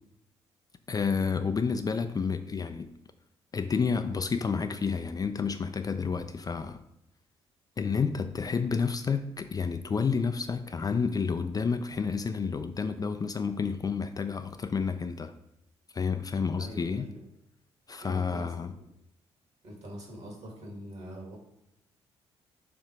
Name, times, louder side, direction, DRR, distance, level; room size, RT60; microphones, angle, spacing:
voice 1, 0.9-2.9 3.5-6.8 7.8-15.3 15.9-17.1 17.9-18.7, left 5 dB, 25° left, 8 dB, 0.4 m, -30 dB
voice 2, 16.6-17.2 18.0-18.5 19.6-21.4, equal, 50° right, 0 dB, 2.1 m, -43 dB
6.8 x 2.8 x 4.9 m, 0.81 s
figure-of-eight pair, 45°, 14 cm